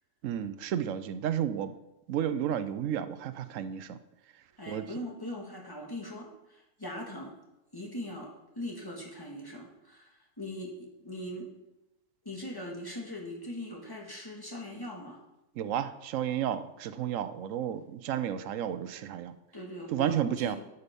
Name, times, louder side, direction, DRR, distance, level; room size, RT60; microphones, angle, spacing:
voice 1, 0.2-1.7 2.1-4.0 4.7-4.9 15.5-19.3 19.9-20.6, right 10 dB, 90° right, 12 dB, 1.0 m, -32 dB
voice 2, 4.6-7.3 7.7-11.5 12.2-15.2 19.5-20.6, left 1 dB, 15° left, -2 dB, 1.9 m, -40 dB
12.5 x 5.4 x 5.2 m, 0.92 s
omnidirectional pair, 1.3 m